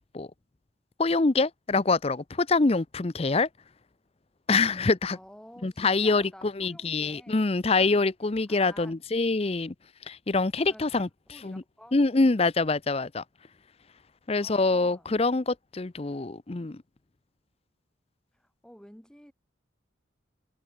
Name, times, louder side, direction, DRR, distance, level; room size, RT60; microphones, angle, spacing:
voice 1, 1.0-3.5 4.5-5.2 5.6-6.3 6.6-9.7 10.1-11.1 11.4-11.6 11.9-13.2 14.3-16.8, left 3 dB, 30° left, 0.6 m, -25 dB
voice 2, 5.1-7.4 7.8-8.0 8.5-8.9 10.7-12.0 14.4-15.6 18.3-19.3, equal, 5° left, 4.2 m, -51 dB
head